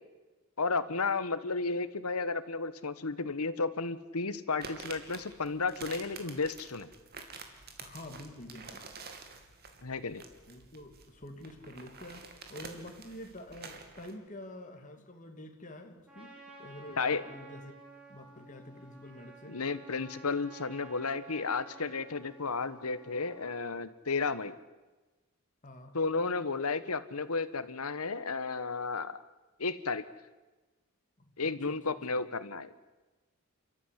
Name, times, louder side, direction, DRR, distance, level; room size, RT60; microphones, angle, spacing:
voice 1, 0.6-6.9 9.8-10.2 17.0-17.2 19.5-24.5 25.9-29.2 29.6-30.0 31.4-32.7, left 4 dB, 85° left, 14 dB, 1.3 m, -33 dB
Icy Water - Cracking and Break through, 4.6-14.1, right 4 dB, 45° right, 2.7 m, -48 dB
voice 2, 7.8-8.9 10.5-17.8 18.1-19.6 25.6-26.0 31.2-32.2, left 1 dB, 35° left, 4 dB, 2.4 m, -48 dB
Trumpet, 16.1-23.7, right 2 dB, 5° right, 5.9 m, -53 dB
29.0 x 14.0 x 9.9 m, 1.2 s
head